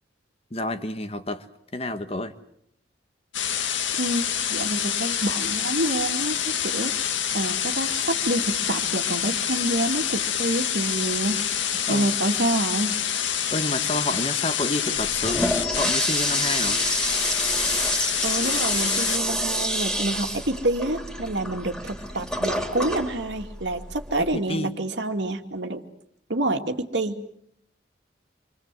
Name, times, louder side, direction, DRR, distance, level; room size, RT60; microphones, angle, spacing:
voice 1, 0.5-1.5 1.7-2.3 11.9-12.1 13.5-16.8 24.2-24.8, left 2 dB, 30° left, 9 dB, 1.5 m, -29 dB
sound 1, 3.3-19.2, left 9 dB, 90° left, 1.9 m, -27 dB
voice 2, 4.5-6.9 7.3-11.4 11.9-12.9 18.2-25.8 26.3-27.2, right 1 dB, 70° right, 6 dB, 2.4 m, -27 dB
Toilet flush, 15.0-24.4, right 1 dB, 5° left, 3.0 m, -28 dB
28.5 x 24.5 x 7.7 m, 0.72 s
head